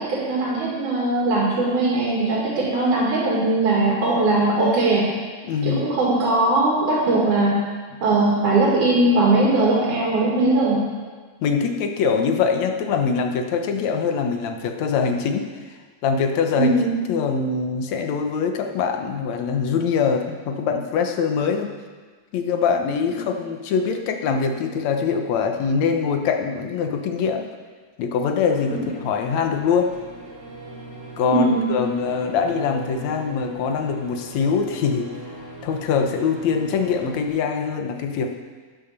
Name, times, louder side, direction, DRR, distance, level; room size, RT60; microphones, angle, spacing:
voice 1, 0.0-5.1 5.6-7.6 8.0-10.9 16.6-16.9 31.3-31.6, right 2 dB, 90° right, -5 dB, 3.9 m, -20 dB
voice 2, 5.4-5.8 11.4-15.5 16.0-16.7 17.1-21.7 22.3-27.5 28.0-29.9 31.2-35.1 35.6-38.4, left 6 dB, 70° left, 5 dB, 2.3 m, -23 dB
sound 1, 28.4-37.3, right 1 dB, 25° right, 3.5 m, -38 dB
12.5 x 10.0 x 6.7 m, 1.4 s
omnidirectional pair, 3.4 m